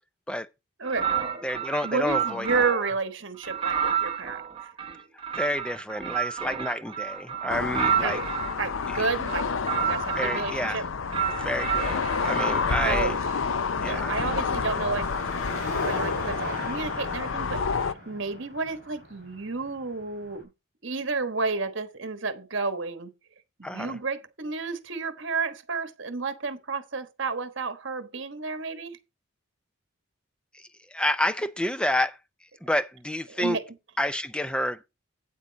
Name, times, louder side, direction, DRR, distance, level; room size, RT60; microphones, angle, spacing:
voice 1, 0.8-1.1 1.8-4.7 8.0-8.2 8.6-9.5 9.8-10.9 12.8-13.5 13.8-15.1 15.8-20.5 20.8-23.1 23.6-29.0 33.3-33.6, right 4 dB, 60° right, 1.3 m, -31 dB
sound 1, 0.9-3.0 3.4-8.5 9.2-10.8 11.1-13.1, right 8 dB, 25° right, 1.0 m, -30 dB
voice 2, 1.4-2.5 5.1-8.2 8.9-9.0 10.1-10.8 11.4-13.1 13.8-14.3 23.6-24.0 30.5-32.2 32.6-33.6 34.0-34.8, left 1 dB, 5° left, 0.5 m, -29 dB
sound 2, 7.5-17.9, left 5 dB, 70° left, 0.6 m, -29 dB
Car passing by / Traffic noise roadway noise / Engine, 13.1-20.4, equal, 40° left, 5.2 m, -40 dB
8.8 x 8.2 x 4.0 m
head